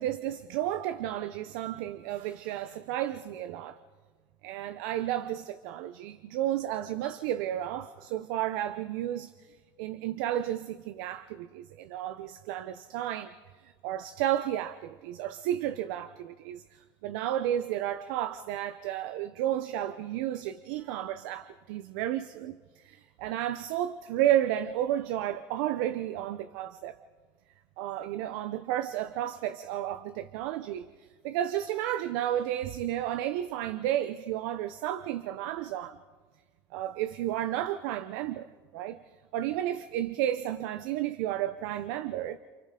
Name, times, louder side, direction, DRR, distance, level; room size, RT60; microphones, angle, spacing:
voice 1, 0.0-3.8 4.4-9.3 9.8-27.0 27.8-30.9 31.2-36.0 36.7-39.0 39.3-42.4, right 12 dB, 80° right, 11 dB, 0.7 m, -32 dB
28.5 x 27.5 x 3.8 m, 1.5 s
supercardioid pair, 95°, 11 cm